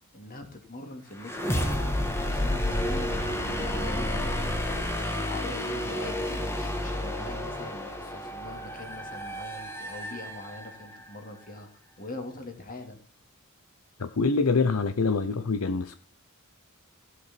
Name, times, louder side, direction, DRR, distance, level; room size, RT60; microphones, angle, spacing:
voice 1, 0.1-1.9 2.2-4.5 4.8-11.7 12.0-13.0, left 2 dB, 40° left, 4 dB, 2.7 m, -42 dB
sound 1, 1.2-11.0, left 1 dB, 10° left, 1.6 m, -30 dB
voice 2, 14.0-15.9, left 4 dB, 70° left, 11 dB, 0.7 m, -25 dB
15.0 x 8.1 x 4.5 m, 0.36 s
head